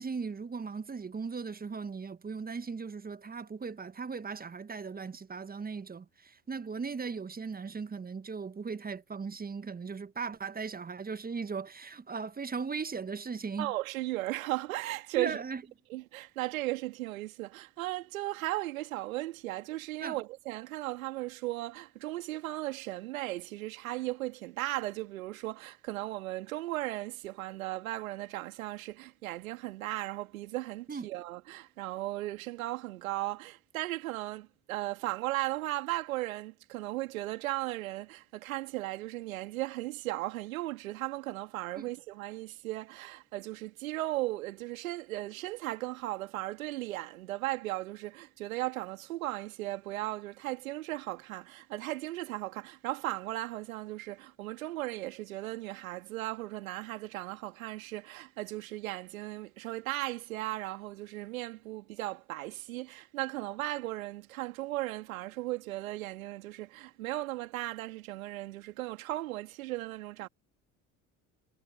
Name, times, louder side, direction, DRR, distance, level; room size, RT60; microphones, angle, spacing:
voice 1, 0.0-13.7 15.2-15.6 20.0-20.2 30.9-31.1 41.8-41.9, right 5 dB, 20° right, 1.3 m, -38 dB
voice 2, 13.6-15.4 15.9-70.3, right 17 dB, 75° right, 2.5 m, -36 dB
figure-of-eight pair, 60°, 41 cm